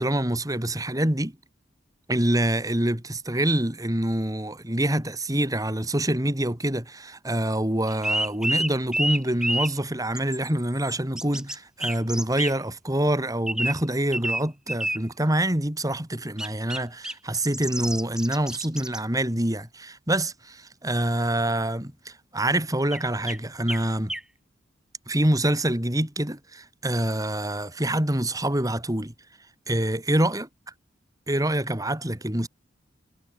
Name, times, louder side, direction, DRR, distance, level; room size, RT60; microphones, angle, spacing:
voice 1, 0.0-1.3 2.1-24.1 25.1-29.1 29.7-30.5 31.3-32.5, right 1 dB, 20° right, 3.2 m, -26 dB
sound 1, 7.9-9.7 10.1-11.6 11.8-12.5 13.5-13.7 14.1-14.4 14.7-15.0 16.4-16.8 17.0-19.0 22.9-23.0 23.3-23.4 23.7-23.8 24.1-24.2, right 1 dB, 5° right, 0.5 m, -28 dB
head